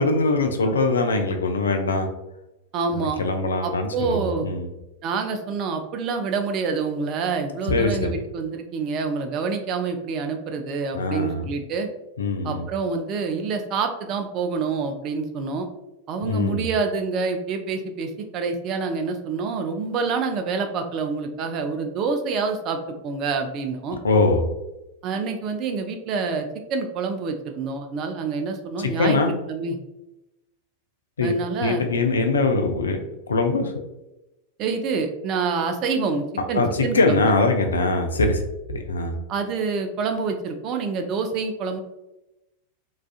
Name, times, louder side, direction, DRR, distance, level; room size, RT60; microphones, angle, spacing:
voice 1, 0.0-2.1 2.9-4.7 7.7-8.1 10.9-11.5 12.2-12.6 16.2-16.7 24.0-24.4 29.0-29.3 31.2-31.3 31.6-33.0 33.3-33.7 36.5-39.2, left 3 dB, 70° left, 5 dB, 0.3 m, -22 dB
voice 2, 2.7-3.2 3.6-4.5 5.0-11.9 12.4-15.7 16.1-24.0 25.0-29.2 29.5-29.8 31.2-31.9 34.6-37.2 39.3-41.8, right 4 dB, 35° right, 5 dB, 0.3 m, -27 dB
2.3 x 2.3 x 2.3 m, 0.94 s
figure-of-eight pair, 90°, 0 cm